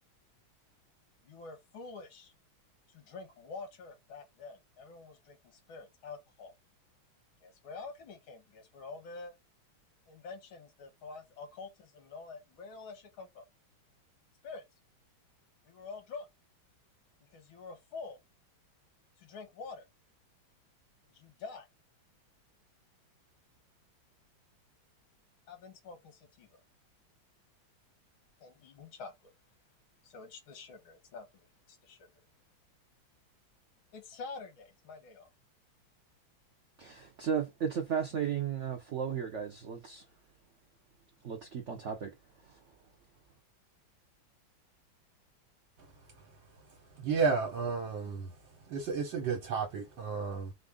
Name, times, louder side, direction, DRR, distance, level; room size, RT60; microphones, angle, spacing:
voice 1, 1.2-2.3 2.9-6.5 7.4-9.4 10.1-13.4 14.4-14.6 15.6-16.3 17.3-18.2 19.2-19.9 21.1-21.7 25.5-26.6 28.4-29.3 30.0-32.1 33.9-35.3, left 4 dB, 80° left, 2.0 m, -47 dB
voice 2, 36.8-40.0 41.2-42.1 42.4-42.6, right 7 dB, 85° right, 0.6 m, -35 dB
voice 3, 46.7-48.3 48.7-50.5, right 5 dB, 70° right, 1.6 m, -32 dB
4.3 x 2.5 x 3.6 m
omnidirectional pair, 2.2 m